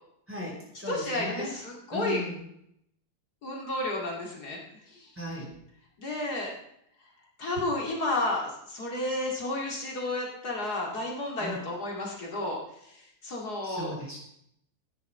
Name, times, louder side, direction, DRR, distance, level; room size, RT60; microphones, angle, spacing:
voice 1, 0.3-1.6 1.9-2.4 5.2-5.5 11.4-11.6 13.6-14.2, left 1 dB, 5° right, -3 dB, 4.3 m, -37 dB
voice 2, 0.9-2.2 3.4-4.6 4.9-5.1 6.0-6.5 7.4-12.6 12.8-13.9, left 2 dB, 65° left, -1 dB, 3.0 m, -32 dB
12.5 x 10.0 x 5.6 m, 0.74 s
omnidirectional pair, 1.8 m